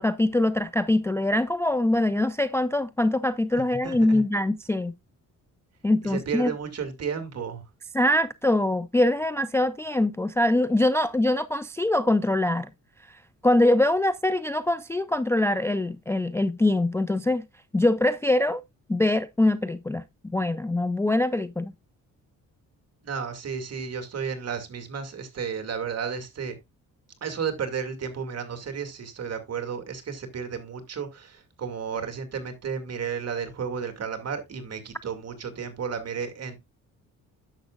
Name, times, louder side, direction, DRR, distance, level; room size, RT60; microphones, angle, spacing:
voice 1, 0.0-4.9 5.8-6.5 7.9-12.7 13.4-17.4 17.7-18.6 18.9-20.0 20.3-21.7, left 1 dB, 10° left, 0.4 m, -23 dB
voice 2, 3.8-4.2 6.0-7.6 23.0-26.6 27.2-36.6, right 6 dB, 50° right, 2.3 m, -33 dB
10.5 x 7.1 x 2.4 m
cardioid pair, 95°, 33 cm